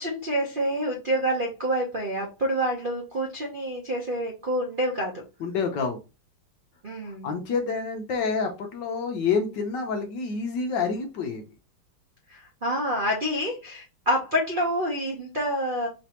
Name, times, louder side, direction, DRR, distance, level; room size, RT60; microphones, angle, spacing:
voice 1, 0.0-5.2 6.8-7.3 12.3-15.9, equal, 80° right, 0 dB, 0.4 m, -27 dB
voice 2, 5.4-6.0 7.1-11.4, left 5 dB, 65° left, 4 dB, 1.3 m, -28 dB
5.0 x 3.3 x 2.9 m, 0.29 s
omnidirectional pair, 2.4 m